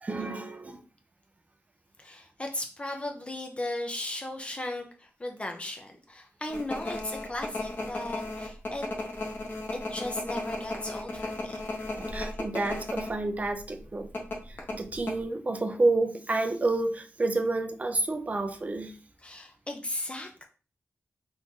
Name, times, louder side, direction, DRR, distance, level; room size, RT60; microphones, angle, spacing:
voice 1, 0.0-0.8 12.0-14.1 14.5-18.9, right 2 dB, 30° right, 0.4 m, -29 dB
voice 2, 2.0-8.8 9.7-11.6 19.2-20.5, left 1 dB, 25° left, 0.5 m, -36 dB
sound 1, 6.5-13.1 13.4-13.6 14.1-15.2, left 2 dB, 45° left, 0.9 m, -35 dB
3.0 x 2.5 x 3.6 m
wide cardioid pair, 125°, 5 cm